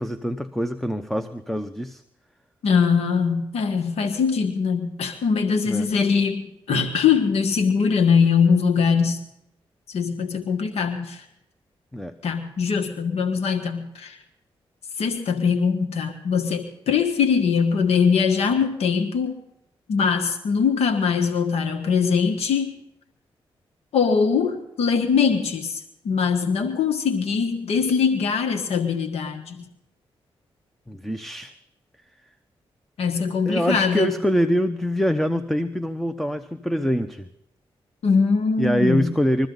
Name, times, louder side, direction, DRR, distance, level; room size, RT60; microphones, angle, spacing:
voice 1, 0.0-2.0 5.7-5.9 11.9-12.2 30.9-31.5 33.5-37.3 38.6-39.5, equal, ahead, 9 dB, 0.9 m, -24 dB
voice 2, 2.6-9.2 9.9-11.2 12.2-14.2 15.0-19.4 19.9-22.7 23.9-29.7 33.0-34.1 38.0-39.1, left 6 dB, 85° left, 6 dB, 1.7 m, -22 dB
22.0 x 14.5 x 4.0 m, 0.80 s
cardioid pair, 70°, 10 cm